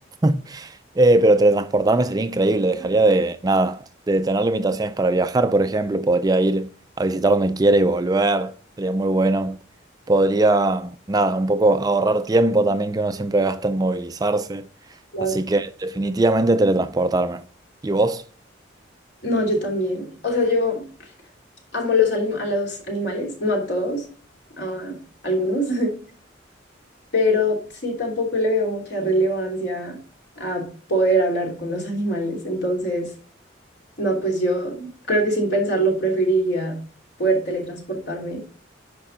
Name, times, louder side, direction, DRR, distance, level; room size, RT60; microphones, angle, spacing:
voice 1, 0.2-6.7 7.0-9.6 10.1-14.6 15.2-17.4 17.8-18.2, right 2 dB, 20° right, 0.4 m, -20 dB
voice 2, 19.2-20.8 21.7-24.1 24.6-25.0 25.2-25.9 27.1-30.0 30.4-33.1 34.0-36.8 37.2-38.4, equal, 60° left, 3.0 m, -23 dB
10.0 x 5.2 x 3.8 m
head